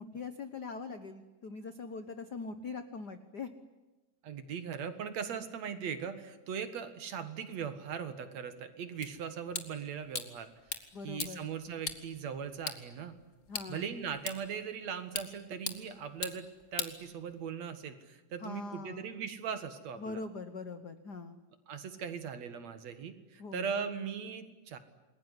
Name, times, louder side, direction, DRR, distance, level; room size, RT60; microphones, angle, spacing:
voice 1, 0.0-3.5 10.9-11.5 13.5-13.9 18.4-19.2 20.0-21.4 23.4-23.8, left 4 dB, 75° left, 10 dB, 0.9 m, -42 dB
voice 2, 4.2-10.5 11.0-13.2 13.7-20.2 21.7-24.8, right 7 dB, 60° right, 10 dB, 2.8 m, -39 dB
sound 1, 9.0-17.6, left 4 dB, 30° left, 1.7 m, -43 dB
28.5 x 21.0 x 9.9 m, 1.2 s
omnidirectional pair, 3.8 m